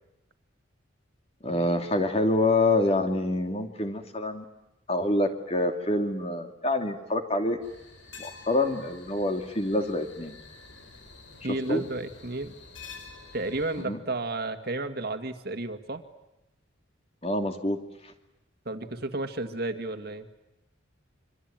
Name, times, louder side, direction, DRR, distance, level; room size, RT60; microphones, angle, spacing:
voice 1, 1.4-4.4 4.9-7.6 8.2-10.3 11.5-11.8 13.8-14.0 17.2-17.8, left 1 dB, 30° left, 6 dB, 2.8 m, -26 dB
sound 1, 7.6-13.8, left 4 dB, 75° left, 4.9 m, -48 dB
voice 2, 11.4-12.5 13.3-16.0 18.7-20.3, right 2 dB, 55° right, 8 dB, 2.0 m, -32 dB
26.5 x 24.5 x 9.1 m, 0.92 s
head